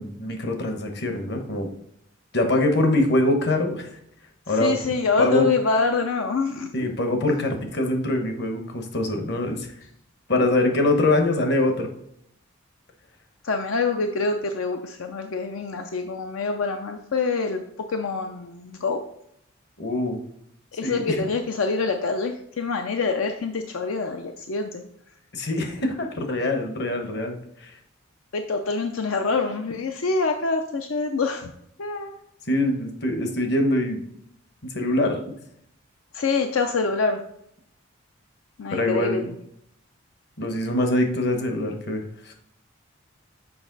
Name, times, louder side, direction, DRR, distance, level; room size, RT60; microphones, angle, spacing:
voice 1, 0.0-1.7 2.3-3.9 4.5-4.7 5.2-5.5 6.7-9.7 10.3-11.9 19.8-20.2 20.8-21.3 25.3-27.7 32.5-34.0 34.6-35.2 38.7-39.3 40.4-42.3, left 1 dB, 50° left, 5 dB, 1.1 m, -24 dB
voice 2, 4.5-6.7 13.4-17.6 17.9-19.0 20.7-24.8 28.3-31.5 31.8-32.1 36.1-37.2 38.6-39.2, left 4 dB, 80° left, 5 dB, 0.5 m, -25 dB
6.9 x 5.3 x 3.9 m, 0.73 s
head